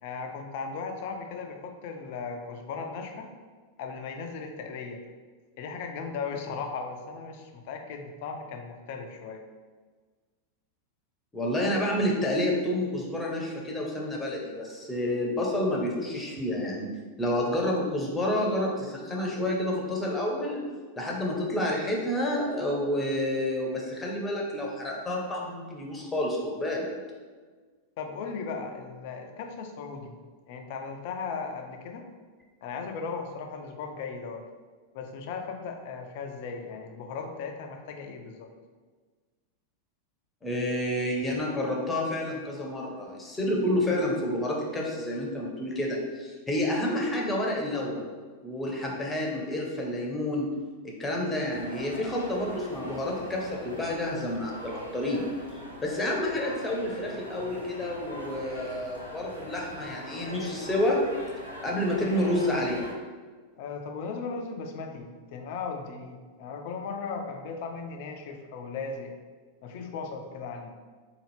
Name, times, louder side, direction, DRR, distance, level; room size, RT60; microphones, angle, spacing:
voice 1, 0.0-3.3 3.8-5.0 5.6-9.4 28.0-30.2 30.5-32.1 32.6-34.4 34.9-38.5 63.6-69.1 69.6-70.7, left 5 dB, 50° left, 4 dB, 0.4 m, -37 dB
voice 2, 11.3-16.9 17.2-20.6 21.0-26.9 40.4-48.0 48.4-50.5 51.0-55.2 55.8-61.0 61.6-62.8, left 1 dB, 15° left, -2 dB, 0.8 m, -29 dB
sound 1, 51.5-62.9, equal, 90° left, 0.6 m, -42 dB
4.0 x 2.4 x 3.2 m, 1.5 s
figure-of-eight pair, 90°, 0 cm